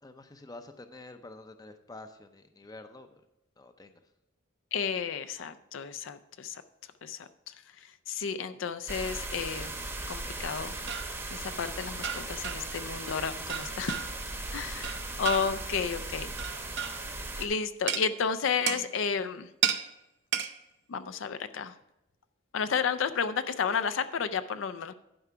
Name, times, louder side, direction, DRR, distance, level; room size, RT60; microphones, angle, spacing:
voice 1, 0.0-3.2 3.6-4.0 14.7-14.9, left 2 dB, 20° left, 8 dB, 0.6 m, -48 dB
voice 2, 4.7-6.6 7.0-9.8 10.1-10.7 11.3-14.1 14.5-16.3 17.4-19.5 20.9-21.7 22.5-24.9, left 6 dB, 70° left, 11 dB, 0.5 m, -32 dB
sound 1, 8.9-17.5, right 2 dB, 10° right, 0.9 m, -38 dB
sound 2, 10.6-11.2 12.0-12.8 13.5-14.3 14.8-15.7 16.4-17.1 17.9-18.1 18.7-18.9 19.6-19.8 20.3-20.5, right 9 dB, 55° right, 0.6 m, -33 dB
11.5 x 4.9 x 5.6 m, 0.89 s
head